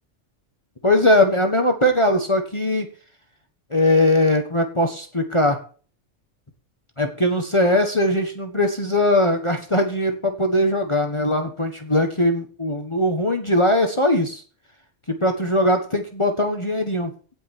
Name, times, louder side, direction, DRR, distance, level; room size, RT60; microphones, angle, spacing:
voice 1, 0.8-2.9 3.7-5.6 7.0-14.4 15.1-17.3, left 1 dB, 25° left, 4 dB, 1.4 m, -20 dB
17.5 x 5.8 x 4.5 m, 0.40 s
omnidirectional pair, 1.2 m